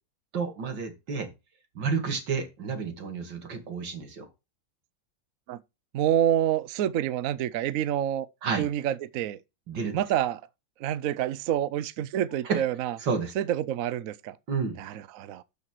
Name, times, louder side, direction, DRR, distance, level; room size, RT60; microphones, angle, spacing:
voice 1, 0.3-1.3 1.7-4.3 8.4-8.6 9.7-10.0 12.4-12.6 13.0-13.3 14.5-14.8, right 5 dB, 90° right, 2.9 m, -30 dB
voice 2, 5.9-8.3 8.6-9.4 9.9-10.4 10.8-13.0 13.4-14.4 14.8-15.4, right 11 dB, 65° right, 0.9 m, -27 dB
12.5 x 5.9 x 4.5 m
omnidirectional pair, 1.9 m